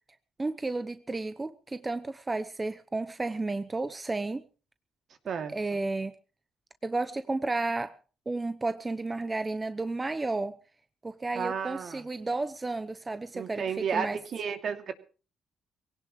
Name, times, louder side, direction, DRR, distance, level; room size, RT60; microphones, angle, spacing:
voice 1, 0.4-4.4 5.5-6.1 6.8-8.0 8.3-10.6 11.0-13.6 13.9-14.2, right 3 dB, 20° right, 10 dB, 0.9 m, -32 dB
voice 2, 11.3-12.0 13.3-14.9, right 6 dB, 60° right, 7 dB, 2.6 m, -32 dB
22.5 x 17.5 x 3.2 m, 0.37 s
cardioid pair, 90°, 0 cm